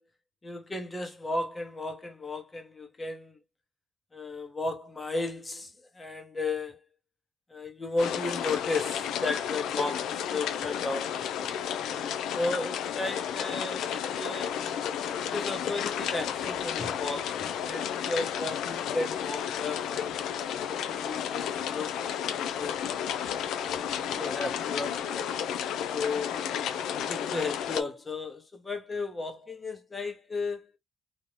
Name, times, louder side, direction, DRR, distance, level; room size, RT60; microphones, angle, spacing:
voice 1, 0.4-3.4 4.1-6.8 7.5-11.6 12.3-14.6 15.2-20.2 20.7-22.8 23.7-25.4 25.9-26.4 27.1-30.7, left 3 dB, 25° left, 0.9 m, -34 dB
sound 1, 8.0-27.8, left 9 dB, 80° left, 0.4 m, -32 dB
2.6 x 2.2 x 3.1 m
cardioid pair, 90°, 0 cm